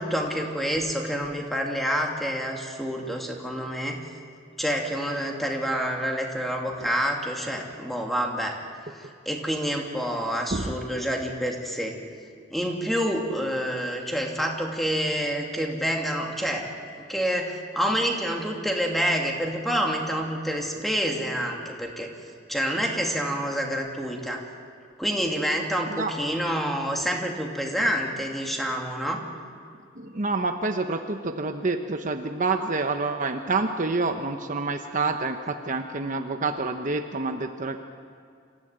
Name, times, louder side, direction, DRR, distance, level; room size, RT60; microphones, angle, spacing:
voice 1, 0.0-4.0 4.6-8.6 9.0-12.0 12.5-16.7 17.0-22.1 22.5-24.4 25.0-29.2, equal, ahead, 0 dB, 2.8 m, -28 dB
voice 2, 30.0-37.8, right 3 dB, 45° right, 5 dB, 1.0 m, -28 dB
27.0 x 15.0 x 8.9 m, 2.3 s
head